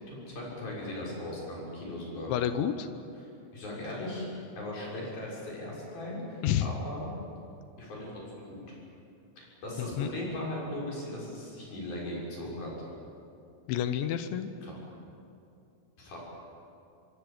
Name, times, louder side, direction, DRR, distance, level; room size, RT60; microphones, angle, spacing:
voice 1, 0.1-2.3 3.5-7.1 7.8-8.8 9.4-12.7 14.6-14.7 16.0-16.2, left 1 dB, 50° left, -4 dB, 8.4 m, -38 dB
voice 2, 2.3-2.9 6.4-6.7 9.8-10.1 13.7-14.5, left 10 dB, 80° left, 9 dB, 3.2 m, -29 dB
26.0 x 23.5 x 7.4 m, 2.6 s
omnidirectional pair, 5.3 m